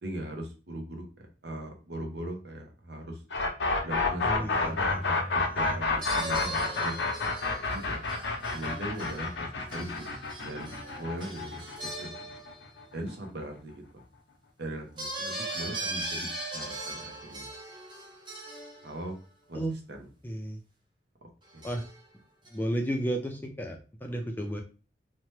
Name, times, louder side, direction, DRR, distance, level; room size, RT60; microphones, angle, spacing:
voice 1, 0.0-3.2 3.8-8.0 8.5-10.1 10.4-11.6 12.0-12.3 12.9-14.0 14.6-17.5 18.8-19.2 19.5-19.6 19.9-20.1 21.2-21.7, right 1 dB, 70° right, 2 dB, 0.7 m, -40 dB
sound 1, 3.3-13.1, left 3 dB, 85° left, 0.6 m, -29 dB
voice 2, 4.2-5.4 19.5-19.7 20.2-20.6 21.6-21.8 22.5-24.6, right 1 dB, 10° left, 3 dB, 0.4 m, -33 dB
sound 2, 4.7-5.0 6.0-13.0 15.0-19.2 21.4-22.1 22.4-22.5, right 1 dB, 25° right, 0.7 m, -39 dB
2.8 x 2.1 x 3.1 m, 0.34 s
head